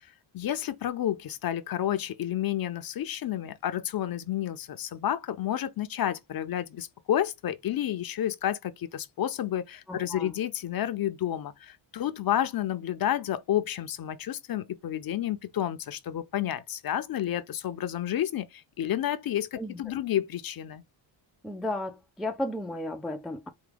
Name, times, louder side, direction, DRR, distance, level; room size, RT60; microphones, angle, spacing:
voice 1, 0.3-20.8, left 11 dB, 50° left, 0.5 m, -30 dB
voice 2, 9.9-10.4 19.6-19.8 21.4-23.5, left 1 dB, ahead, 0.3 m, -34 dB
4.7 x 2.2 x 3.3 m
cardioid pair, 130°, 48 cm